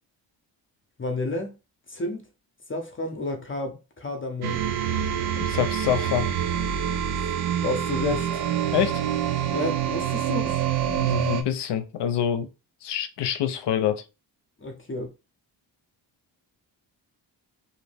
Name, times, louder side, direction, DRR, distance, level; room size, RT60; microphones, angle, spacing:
voice 1, 1.0-1.5 1.9-2.2 2.7-4.6 7.6-8.5 9.5-10.6 14.6-15.1, left 2 dB, 30° left, 0.6 m, -30 dB
sound 1, 4.4-11.4, right 9 dB, 60° right, 0.5 m, -26 dB
voice 2, 5.4-6.3 8.7-9.0 10.9-12.5 12.8-14.0, left 9 dB, 65° left, 0.6 m, -26 dB
2.6 x 2.1 x 3.2 m
cardioid pair, 65°, 44 cm